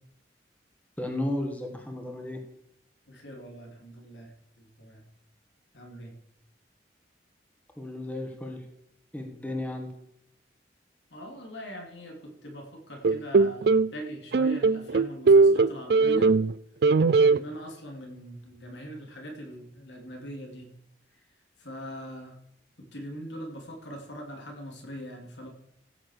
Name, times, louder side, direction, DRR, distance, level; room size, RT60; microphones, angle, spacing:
voice 1, 1.0-2.4 7.8-8.6 9.1-9.9, left 1 dB, 10° left, 2 dB, 1.7 m, -33 dB
voice 2, 3.1-5.0 5.7-6.1 11.1-16.3 17.2-20.7 21.6-22.4 22.9-25.5, equal, 85° left, 2 dB, 3.3 m, -41 dB
sound 1, 13.0-13.9 14.3-16.5 16.8-17.4, right 4 dB, 60° right, 0.4 m, -20 dB
15.5 x 6.3 x 6.7 m, 0.77 s
head